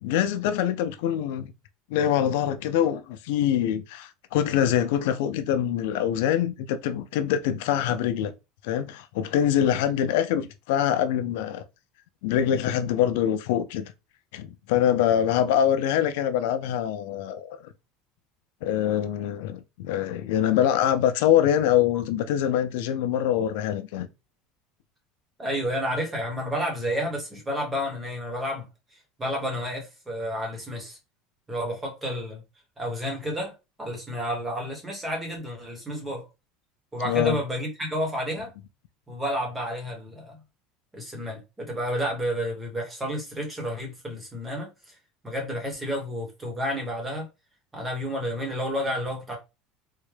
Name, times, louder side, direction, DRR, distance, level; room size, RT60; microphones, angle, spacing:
voice 1, 0.0-1.5 1.9-8.3 8.6-11.6 12.2-13.9 14.3-17.6 18.6-24.1 37.0-37.4, left 10 dB, 80° left, 0.4 m, -24 dB
voice 2, 25.4-28.7 29.2-31.0 31.5-32.4 32.8-33.5 33.8-36.2 36.9-38.5 39.1-40.4 40.9-44.7 45.2-47.3 47.7-49.4, equal, 10° right, 1.1 m, -30 dB
3.6 x 2.1 x 3.2 m
cardioid pair, 155°, 0 cm